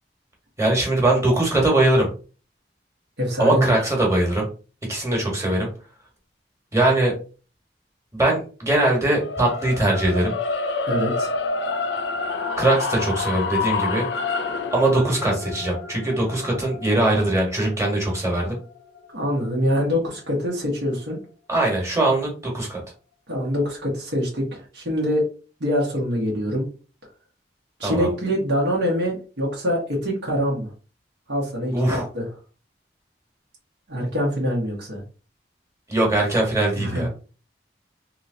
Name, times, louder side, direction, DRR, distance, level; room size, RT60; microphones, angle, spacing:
voice 1, 0.6-2.1 3.4-4.5 4.9-5.7 6.7-7.1 8.1-10.3 12.6-14.1 14.7-18.6 21.5-22.8 27.8-28.1 31.7-32.1 35.9-37.1, right 1 dB, 15° right, -1 dB, 1.2 m, -21 dB
voice 2, 3.2-3.7 10.9-11.3 19.1-21.2 23.3-25.3 25.6-26.6 27.8-30.7 31.3-32.2 33.9-35.0 36.7-37.1, equal, 90° right, -3 dB, 1.2 m, -24 dB
sound 1, 9.2-19.4, left 4 dB, 85° left, 0.4 m, -28 dB
3.0 x 2.8 x 2.6 m, 0.36 s
head